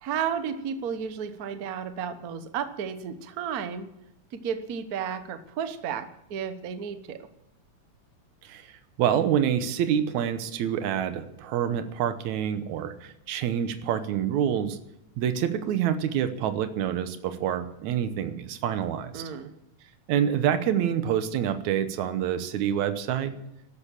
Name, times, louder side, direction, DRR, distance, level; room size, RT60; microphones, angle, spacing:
voice 1, 0.0-3.9 4.3-6.0 6.3-7.2 19.1-19.5, right 7 dB, 60° right, 9 dB, 0.9 m, -32 dB
voice 2, 8.4-8.7 9.0-14.8 15.2-19.2 20.1-23.3, right 9 dB, 80° right, 10 dB, 2.4 m, -27 dB
13.5 x 12.0 x 7.3 m, 0.85 s
omnidirectional pair, 3.3 m